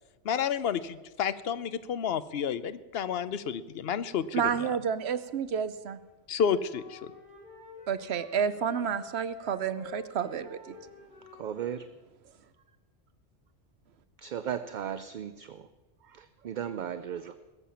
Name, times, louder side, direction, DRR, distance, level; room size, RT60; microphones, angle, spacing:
voice 1, 0.2-4.7 6.3-7.1, left 7 dB, 65° left, 14 dB, 0.9 m, -30 dB
voice 2, 4.3-6.0 7.9-10.6, right 7 dB, 70° right, 13 dB, 1.0 m, -30 dB
Wind instrument woodwind instrument, 6.4-11.8, left 3 dB, 50° left, 5.1 m, -47 dB
voice 3, 11.4-11.9 14.2-15.6 16.4-17.3, right 9 dB, 55° right, 12 dB, 0.6 m, -35 dB
19.5 x 7.5 x 7.0 m, 1.2 s
omnidirectional pair, 1.1 m